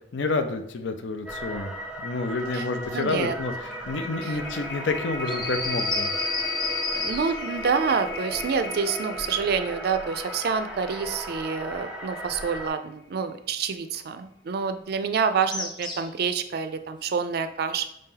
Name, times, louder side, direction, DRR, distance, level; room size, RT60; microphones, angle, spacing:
voice 1, 0.1-6.1, left 3 dB, 90° left, 8 dB, 0.5 m, -29 dB
sound 1, 1.3-12.7, right 1 dB, 5° right, 0.5 m, -37 dB
sound 2, 1.9-2.1 2.4-12.6, left 3 dB, 70° left, 1.1 m, -39 dB
voice 2, 2.9-3.4 4.2-4.4 6.9-17.9, right 6 dB, 60° right, 10 dB, 0.4 m, -27 dB
sound 3, 5.3-7.5 15.5-16.2, left 3 dB, 25° left, 0.8 m, -30 dB
5.0 x 2.8 x 3.8 m, 0.77 s
head